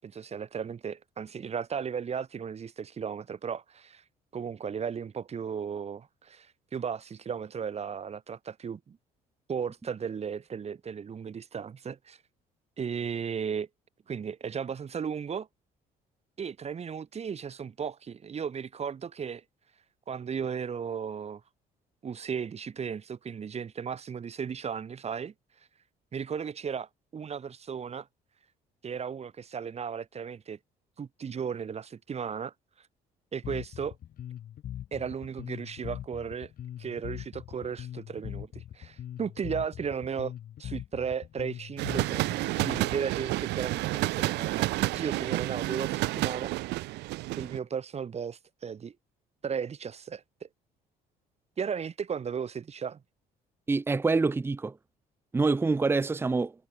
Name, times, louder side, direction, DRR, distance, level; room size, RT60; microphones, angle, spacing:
voice 1, 0.0-4.0 4.3-6.5 6.7-9.0 9.5-12.2 12.8-13.7 14.1-15.5 16.4-19.4 20.1-21.4 22.0-25.3 26.1-28.1 28.8-30.6 31.0-32.5 33.3-33.9 34.9-36.5 36.8-40.3 40.6-46.5 47.4-48.9 49.4-50.5 51.6-53.0, right 7 dB, 40° right, 6.8 m, -35 dB
Bass guitar, 33.4-43.0, left 11 dB, 60° left, 4.0 m, -41 dB
sound 1, 41.8-47.6, right 20 dB, 85° right, 1.2 m, -30 dB
voice 2, 53.7-54.7 55.3-56.5, right 3 dB, 15° right, 0.6 m, -26 dB
cardioid pair, 110°, 17 cm